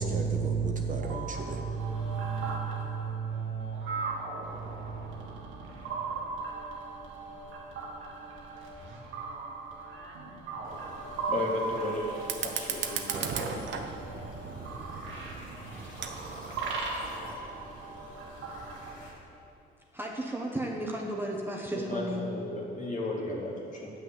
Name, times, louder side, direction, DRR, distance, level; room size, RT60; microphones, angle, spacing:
voice 1, 0.0-4.2 4.5-5.2, right 5 dB, 40° right, 3 dB, 1.0 m, -33 dB
sound 1, 1.0-19.0, right 3 dB, 90° right, 1.7 m, -39 dB
sound 2, 10.6-19.1, left 1 dB, 80° left, 2.6 m, -52 dB
voice 2, 11.3-12.1 12.4-13.8 21.7-23.9, left 2 dB, 40° left, -3 dB, 2.5 m, -34 dB
Fire, 12.2-17.2, right 7 dB, 65° right, 0.9 m, -37 dB
voice 3, 19.9-22.3, right 1 dB, 10° right, -1 dB, 1.2 m, -34 dB
9.2 x 6.2 x 7.8 m, 2.8 s
cardioid pair, 90°, 20 cm